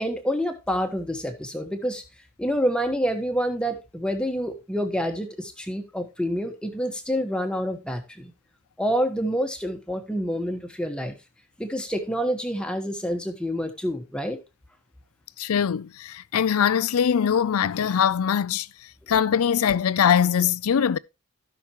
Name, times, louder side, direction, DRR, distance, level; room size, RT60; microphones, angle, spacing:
voice 1, 0.0-2.0 2.4-8.3 8.8-11.1 11.6-14.4, equal, 5° left, 1.2 m, -27 dB
voice 2, 15.4-18.7 19.1-21.0, left 8 dB, 75° left, 0.4 m, -22 dB
16.0 x 6.0 x 3.0 m
head